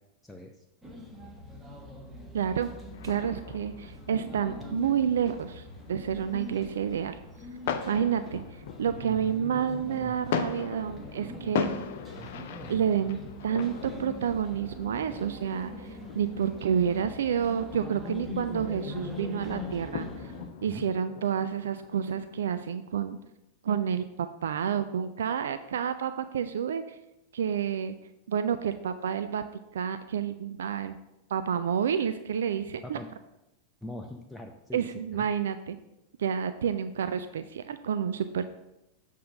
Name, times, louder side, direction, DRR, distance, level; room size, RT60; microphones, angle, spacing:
voice 1, 0.2-0.6 1.2-1.3 9.0-9.1 20.7-20.9 32.8-33.1 33.8-34.9 35.1-35.3, left 1 dB, 5° left, 2 dB, 0.6 m, -42 dB
sound 1, 0.8-20.5, left 1 dB, 10° right, 1.3 m, -42 dB
voice 2, 2.3-2.7 3.0-7.2 7.9-8.4 8.8-11.7 12.7-13.2 13.4-20.3 20.6-23.2 23.6-27.0 27.3-27.9 28.3-29.4 29.7-31.0 31.3-33.0 34.7-35.8 36.2-38.5, right 8 dB, 65° right, 10 dB, 0.4 m, -29 dB
sound 2, 2.9-22.7, left 7 dB, 55° left, 0.6 m, -40 dB
7.6 x 3.7 x 6.5 m, 0.91 s
figure-of-eight pair, 90°, 0 cm